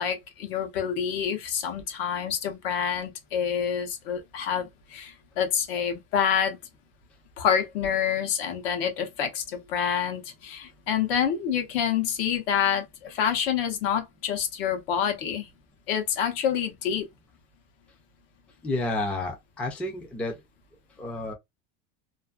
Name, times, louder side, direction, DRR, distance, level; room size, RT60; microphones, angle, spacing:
voice 1, 0.0-6.6 7.4-15.5 15.9-17.1, left 8 dB, 70° left, 0.9 m, -27 dB
voice 2, 18.6-20.4 21.0-21.3, left 2 dB, 5° left, 0.3 m, -30 dB
2.5 x 2.5 x 2.3 m
cardioid pair, 160°, 30 cm